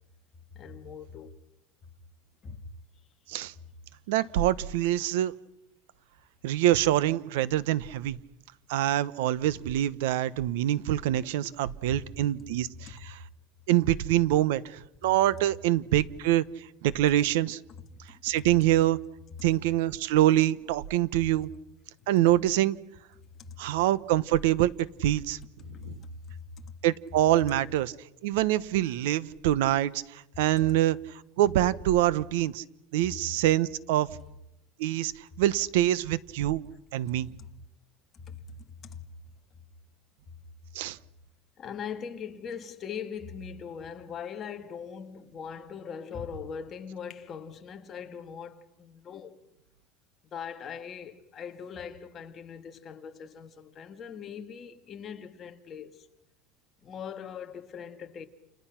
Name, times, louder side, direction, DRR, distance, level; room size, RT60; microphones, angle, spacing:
voice 1, 0.5-1.4 2.4-2.6 11.9-12.0 17.9-18.4 23.4-23.6 25.6-26.7 37.4-37.5 38.1-39.1 41.6-49.4 50.2-56.1 56.8-58.3, left 7 dB, 25° left, 1.7 m, -41 dB
voice 2, 4.1-5.3 6.4-8.2 8.7-13.2 13.7-17.6 18.2-19.0 19.4-21.5 22.1-22.8 23.6-25.4 25.8-25.9 26.8-27.9 28.2-32.6 32.9-34.1 34.8-36.7 36.9-37.3 40.7-41.0, right 13 dB, 85° right, 1.0 m, -25 dB
30.0 x 29.0 x 5.9 m
cardioid pair, 175°, 0 cm